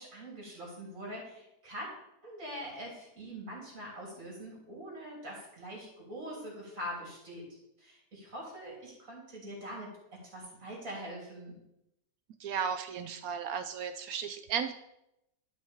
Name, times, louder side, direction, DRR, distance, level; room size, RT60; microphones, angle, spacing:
voice 1, 0.0-1.9 2.2-11.6, equal, 45° right, -4 dB, 3.6 m, -43 dB
voice 2, 12.4-14.7, right 7 dB, 70° right, 9 dB, 0.9 m, -34 dB
12.0 x 5.4 x 3.5 m, 0.83 s
omnidirectional pair, 1.9 m